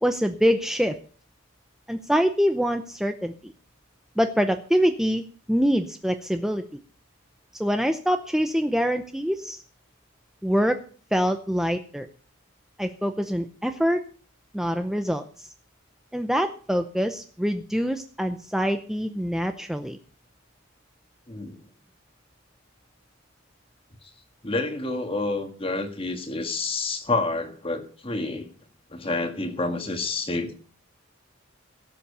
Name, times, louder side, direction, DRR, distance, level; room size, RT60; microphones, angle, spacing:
voice 1, 0.0-1.0 1.9-3.5 4.2-6.6 7.6-9.6 10.4-10.8 11.1-12.1 12.8-14.0 14.5-15.5 16.1-20.0, equal, ahead, 6 dB, 0.6 m, -25 dB
voice 2, 21.3-21.6 24.0-24.1 24.4-28.5 28.9-30.5, left 3 dB, 25° left, 6 dB, 1.7 m, -29 dB
17.0 x 7.6 x 6.7 m, 0.43 s
head